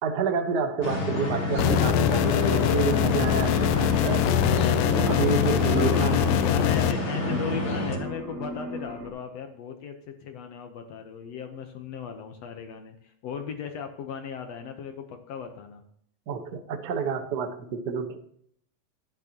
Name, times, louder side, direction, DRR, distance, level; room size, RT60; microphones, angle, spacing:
voice 1, 0.0-6.4 16.3-18.2, right 6 dB, 80° right, 7 dB, 0.9 m, -30 dB
sound 1, 0.8-8.0, left 2 dB, 30° left, 1.3 m, -28 dB
sound 2, 1.6-6.9, left 12 dB, 80° left, 2.0 m, -23 dB
sound 3, 3.2-9.1, right 1 dB, 65° right, 4.5 m, -36 dB
voice 2, 5.7-15.8, left 7 dB, 65° left, 6 dB, 1.8 m, -37 dB
12.0 x 11.0 x 2.9 m, 0.65 s
omnidirectional pair, 3.8 m